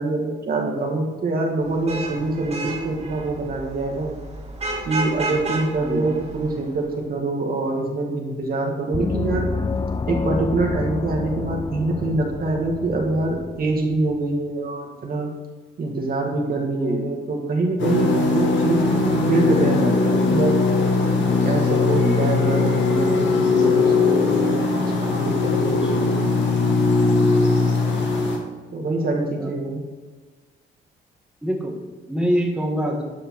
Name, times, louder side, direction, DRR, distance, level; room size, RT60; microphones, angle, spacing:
voice 1, 0.0-4.1 4.9-9.5 10.1-15.3 15.8-20.6 21.4-26.3 28.7-29.8, right 2 dB, 50° right, 0 dB, 1.8 m, -25 dB
Vehicle horn car horn honking / Traffic noise roadway noise, 1.6-6.9, right 2 dB, 30° right, 1.9 m, -32 dB
Gong, 8.9-14.2, left 4 dB, 20° left, 0.4 m, -29 dB
voice 2, 16.7-17.0 18.8-19.0 21.9-22.2 25.8-26.1 29.4-29.5 31.4-31.7 32.1-33.0, equal, 5° right, -1 dB, 1.8 m, -25 dB
sound 1, 17.8-28.4, left 4 dB, 70° left, 1.8 m, -20 dB
12.0 x 5.1 x 4.6 m, 1.3 s
cardioid pair, 90°, 20 cm